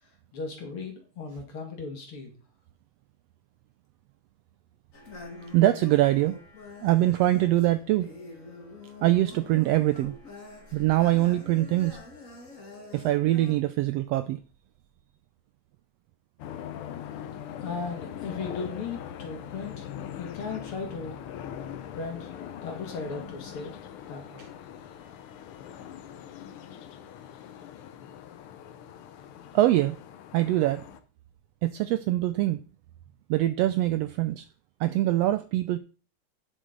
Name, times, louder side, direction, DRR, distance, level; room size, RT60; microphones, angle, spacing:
voice 1, 0.0-2.3 17.4-21.2 21.9-22.3 22.6-24.5, left 4 dB, 50° left, 2.7 m, -37 dB
sound 1, 4.9-13.5, left 3 dB, 30° left, 1.9 m, -45 dB
voice 2, 5.5-6.4 6.8-8.1 9.0-10.1 10.7-12.0 12.9-14.4 29.5-30.0 30.3-30.8 31.6-32.6 33.3-34.4 34.8-35.8, right 15 dB, 90° right, 1.4 m, -23 dB
sound 2, 16.4-31.0, left 9 dB, 75° left, 1.3 m, -41 dB
11.0 x 6.3 x 3.9 m
omnidirectional pair, 3.4 m